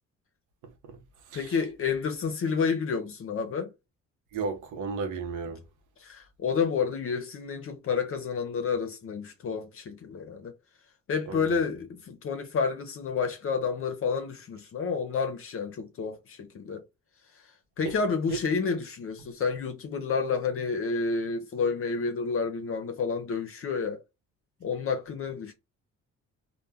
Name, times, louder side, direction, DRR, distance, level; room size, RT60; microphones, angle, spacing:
voice 1, 0.6-1.0 1.3-1.5 4.3-5.6 11.3-11.6 17.8-18.0, right 4 dB, 85° right, 0.7 m, -34 dB
voice 2, 1.3-3.7 6.0-10.5 11.1-16.8 17.8-24.0 24.6-25.5, left 5 dB, 45° left, 0.6 m, -30 dB
2.2 x 2.1 x 3.2 m
cardioid pair, 90°, 30 cm